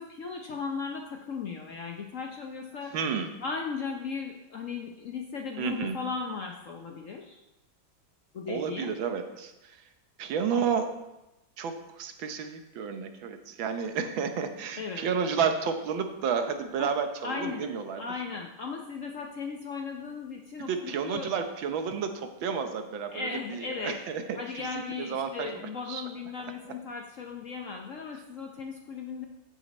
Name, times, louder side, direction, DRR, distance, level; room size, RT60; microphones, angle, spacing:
voice 1, 0.0-3.0 3.4-7.4 8.3-8.9 14.8-15.0 16.8-16.9 17.2-17.6 18.0-21.3 23.1-24.0 24.3-29.3, left 5 dB, 60° left, 2 dB, 0.8 m, -36 dB
voice 2, 2.9-3.3 5.6-6.0 8.5-9.8 10.2-10.9 11.6-18.0 20.6-26.0, right 6 dB, 80° right, 7 dB, 1.7 m, -31 dB
14.5 x 5.5 x 4.2 m, 0.96 s
omnidirectional pair, 2.1 m